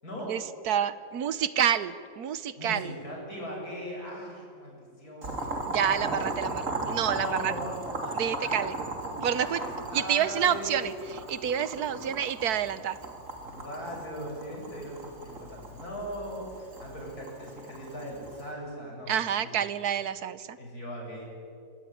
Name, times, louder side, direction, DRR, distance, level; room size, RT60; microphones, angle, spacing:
voice 1, 0.3-2.9 5.6-7.5 8.1-8.7 9.2-9.6 9.9-10.9 11.3-13.0 19.1-20.6, right 9 dB, 65° right, 15 dB, 1.2 m, -28 dB
voice 2, 2.6-6.2 7.0-7.7 8.0-8.7 9.4-10.9 11.9-12.2 13.4-19.1 19.4-19.5 20.6-21.3, equal, 55° left, -2 dB, 8.1 m, -39 dB
Boiling, 5.2-18.5, right 2 dB, 45° right, 3.6 m, -37 dB
25.5 x 17.5 x 9.9 m, 2.4 s
omnidirectional pair, 2.0 m